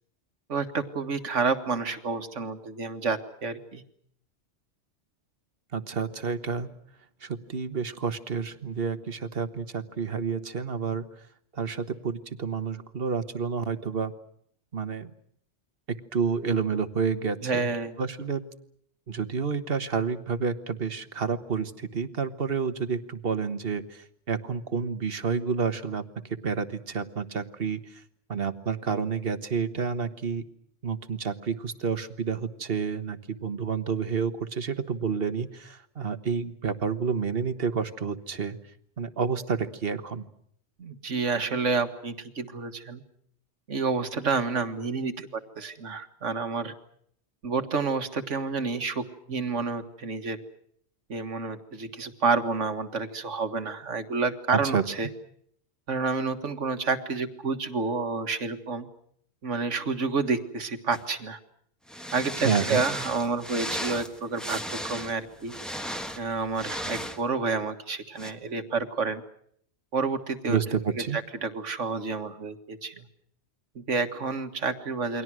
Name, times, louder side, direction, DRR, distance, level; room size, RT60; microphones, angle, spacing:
voice 1, 0.5-3.8 17.4-18.0 40.8-43.0 43.7-46.7 47.4-50.4 51.1-55.1 55.9-58.9 59.4-61.4 62.1-65.5 66.2-69.2 69.9-70.6 71.1-73.0 73.8-75.2, right 4 dB, 75° right, 8 dB, 2.0 m, -29 dB
voice 2, 5.7-6.7 7.2-11.0 11.5-14.1 14.7-15.1 15.9-17.7 18.0-18.5 19.1-26.0 26.3-28.0 28.3-30.4 30.8-38.6 39.0-40.3 54.5-54.8 62.4-62.8 70.5-71.2, right 5 dB, 50° right, 11 dB, 1.5 m, -29 dB
sound 1, 60.9-61.0 61.9-67.2 68.2-68.3, equal, ahead, 1.5 m, -35 dB
29.0 x 23.0 x 6.2 m, 0.67 s
omnidirectional pair, 1.2 m